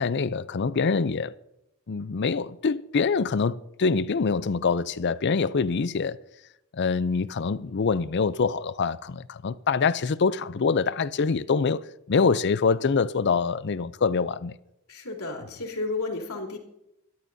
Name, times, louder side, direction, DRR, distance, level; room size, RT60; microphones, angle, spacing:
voice 1, 0.0-1.3 1.9-6.2 6.7-11.8 12.1-14.5, left 5 dB, 50° left, 0.5 m, -25 dB
voice 2, 14.9-16.6, left 3 dB, 75° left, 3.3 m, -32 dB
23.5 x 12.5 x 2.7 m
head